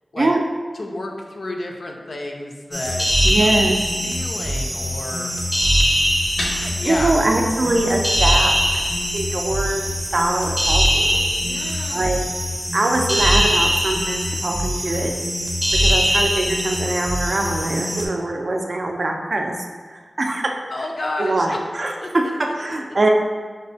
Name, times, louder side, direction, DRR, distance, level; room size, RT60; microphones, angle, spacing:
voice 1, 0.8-5.5 6.5-7.2 11.3-12.1 20.7-21.6 22.0-22.1, left 2 dB, 60° left, 1 dB, 0.4 m, -31 dB
sound 1, 2.7-18.0, equal, ahead, 0.5 m, -22 dB
voice 2, 3.2-3.8 6.9-11.2 11.9-12.3 12.7-15.1 15.8-19.5 20.2-20.5 21.2-22.2 22.6-23.1, right 2 dB, 55° right, 1 dB, 0.4 m, -23 dB
sound 2, 6.2-11.3, equal, 90° left, 0.7 m, -36 dB
5.1 x 2.0 x 2.6 m, 1.5 s
wide cardioid pair, 80°, 0 cm